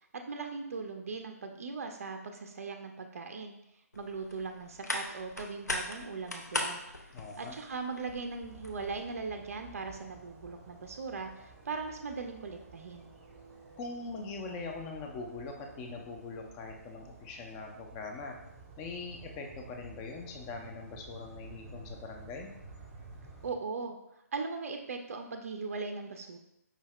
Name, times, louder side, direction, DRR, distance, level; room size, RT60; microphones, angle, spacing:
voice 1, 0.3-3.5 4.0-6.8 7.4-13.1 23.4-24.0 24.3-26.4, right 4 dB, 55° right, 5 dB, 0.4 m, -39 dB
sound 1, 3.9-9.1, left 1 dB, 80° left, 0.7 m, -39 dB
voice 2, 7.1-7.6 13.8-18.4 18.8-22.5, left 3 dB, 20° left, 2 dB, 0.4 m, -42 dB
sound 2, 8.4-23.5, right 3 dB, 20° right, 0.7 m, -53 dB
4.9 x 2.6 x 3.2 m, 0.84 s
figure-of-eight pair, 130°, 9 cm